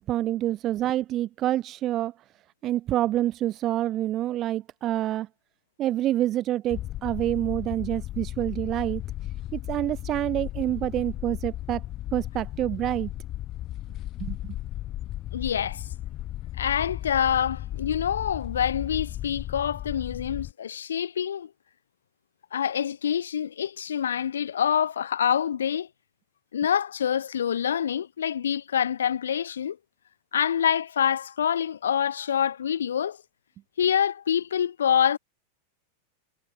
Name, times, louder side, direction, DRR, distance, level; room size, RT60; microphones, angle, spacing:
voice 1, 0.0-2.1 2.6-5.3 5.8-9.0 9.5-11.8 12.1-13.1 14.2-14.6, right 13 dB, 35° right, 0.6 m, -27 dB
sound 1, 6.7-20.5, left 14 dB, 35° left, 1.1 m, -35 dB
voice 2, 15.3-15.9 16.6-21.5 22.5-25.9 26.5-29.8 30.3-33.2 33.8-35.2, left 8 dB, 65° left, 2.6 m, -26 dB
figure-of-eight pair, 90°, 0 cm